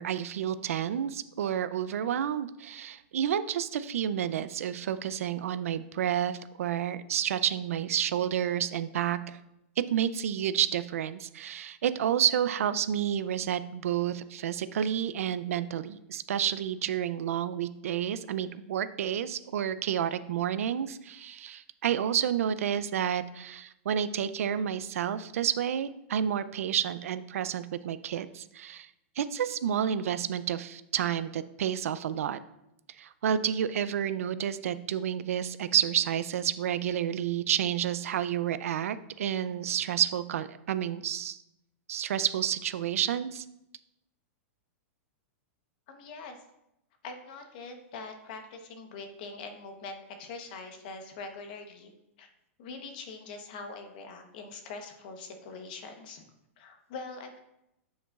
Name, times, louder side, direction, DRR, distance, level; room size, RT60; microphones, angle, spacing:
voice 1, 0.0-9.4 9.8-28.9 29.2-32.4 33.0-41.4 41.9-43.4, right 9 dB, 90° right, 14 dB, 0.5 m, -30 dB
voice 2, 45.9-46.4 47.0-51.9 52.2-52.3 52.6-56.2 56.6-57.4, left 4 dB, 40° left, 5 dB, 1.0 m, -43 dB
8.6 x 7.0 x 2.4 m, 0.86 s
supercardioid pair, 180°, 7 cm